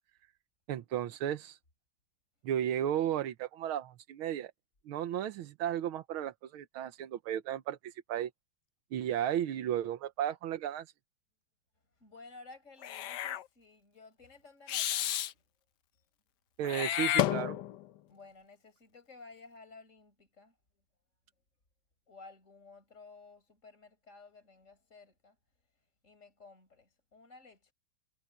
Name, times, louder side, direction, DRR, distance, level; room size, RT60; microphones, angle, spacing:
voice 1, 0.7-1.6 2.4-4.5 4.9-8.3 8.9-10.9 16.6-17.6, right 10 dB, 80° right, 1.7 m, -34 dB
voice 2, 12.0-15.4 15.9-16.0 18.1-20.5 22.1-25.4 26.0-27.7, left 3 dB, 35° left, 5.8 m, -55 dB
Meow / Hiss, 12.8-13.4 14.7-15.3 16.6-17.9, left 12 dB, 65° left, 1.2 m, -31 dB
omnidirectional pair, 2.3 m